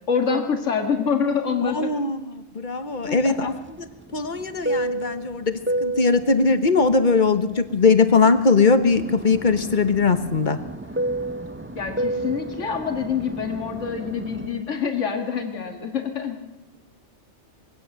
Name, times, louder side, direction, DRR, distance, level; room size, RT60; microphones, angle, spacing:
voice 1, 0.1-1.9 3.1-3.5 11.8-16.4, left 6 dB, 80° left, 4 dB, 2.1 m, -26 dB
voice 2, 1.6-3.5 3.8-3.9 4.1-10.6, left 4 dB, 40° left, 10 dB, 1.3 m, -20 dB
Fixed-wing aircraft airplane, 3.1-8.4 8.8-14.6, right 1 dB, 15° right, 0.5 m, -31 dB
22.0 x 16.5 x 7.7 m, 1.0 s
omnidirectional pair, 1.3 m